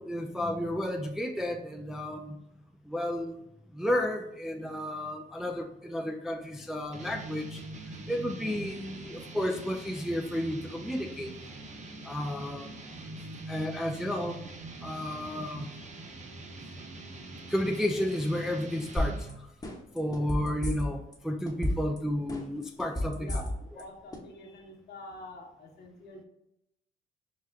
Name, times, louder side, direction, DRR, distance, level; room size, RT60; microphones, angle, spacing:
voice 1, 0.0-2.4 2.9-3.4 3.7-7.6 7.9-11.4 12.0-12.8 13.5-14.4 14.8-15.7 17.5-19.5 19.9-23.4, left 1 dB, ahead, 4 dB, 0.3 m, -32 dB
sound 1, 6.9-19.5, right 2 dB, 35° right, 0.7 m, -44 dB
sound 2, 19.0-19.3 19.6-21.1 21.5-22.0 22.3-23.8 24.1-24.2, left 1 dB, 20° left, 0.9 m, -30 dB
voice 2, 23.2-26.2, left 2 dB, 55° left, 0 dB, 1.1 m, -46 dB
5.0 x 2.2 x 3.3 m, 0.84 s
cardioid pair, 90°, 20 cm